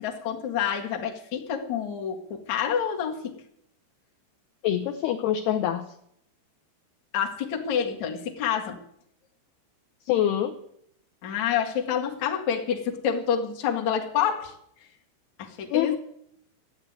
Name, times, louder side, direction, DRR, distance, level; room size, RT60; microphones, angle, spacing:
voice 1, 0.0-3.3 7.1-8.8 11.2-14.5 15.4-16.0, left 8 dB, 55° left, 3 dB, 2.3 m, -28 dB
voice 2, 4.6-5.9 10.1-10.6 15.7-16.0, left 11 dB, 75° left, 4 dB, 2.5 m, -25 dB
15.0 x 9.0 x 9.4 m, 0.71 s
omnidirectional pair, 5.6 m